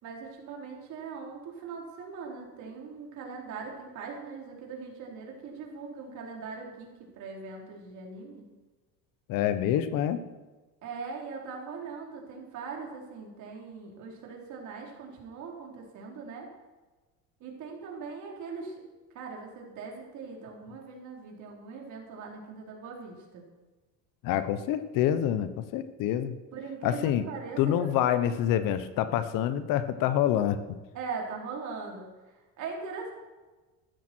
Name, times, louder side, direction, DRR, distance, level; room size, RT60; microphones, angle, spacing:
voice 1, 0.0-8.5 10.8-16.5 17.4-18.8 19.1-23.4 26.5-28.4 30.9-32.1 32.6-33.1, right 5 dB, 55° right, -1 dB, 4.0 m, -41 dB
voice 2, 9.3-10.2 24.2-26.3 26.8-27.2 27.6-30.6, left 10 dB, 65° left, 12 dB, 1.1 m, -27 dB
15.0 x 12.5 x 4.5 m, 1.2 s
cardioid pair, 140°, 35 cm